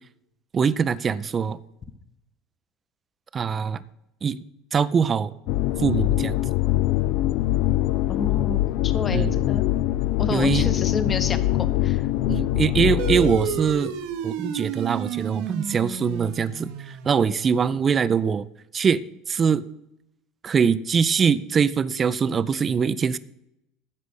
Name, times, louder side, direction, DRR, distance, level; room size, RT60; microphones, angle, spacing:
voice 1, 0.5-1.6 3.3-3.8 4.2-4.4 4.7-5.3 5.8-6.4 9.1-9.3 10.3-10.7 12.3-13.9 14.2-18.5 18.7-19.0 19.3-19.6 20.4-23.2, right 6 dB, 30° right, 17 dB, 0.4 m, -22 dB
sound 1, 5.5-13.8, left 15 dB, 55° left, 0.4 m, -23 dB
voice 2, 8.1-9.6 10.2-12.1, left 4 dB, 30° left, 11 dB, 1.0 m, -30 dB
sound 2, 13.0-17.9, right 9 dB, 60° right, 0.9 m, -32 dB
9.7 x 5.1 x 8.0 m, 0.85 s
figure-of-eight pair, 70°, 0 cm